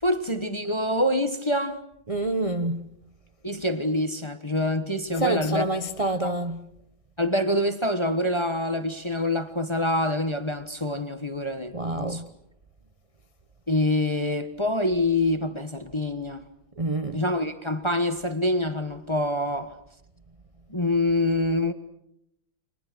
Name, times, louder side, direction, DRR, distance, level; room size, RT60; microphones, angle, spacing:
voice 1, 0.0-1.8 3.4-5.7 6.2-6.4 7.2-12.2 13.7-16.5 17.1-19.7 20.7-21.7, left 1 dB, 15° left, 1.1 m, -26 dB
voice 2, 2.1-2.8 5.1-6.6 11.7-12.3 16.8-17.2, right 2 dB, 25° right, 0.8 m, -27 dB
29.5 x 25.5 x 6.2 m
omnidirectional pair, 2.2 m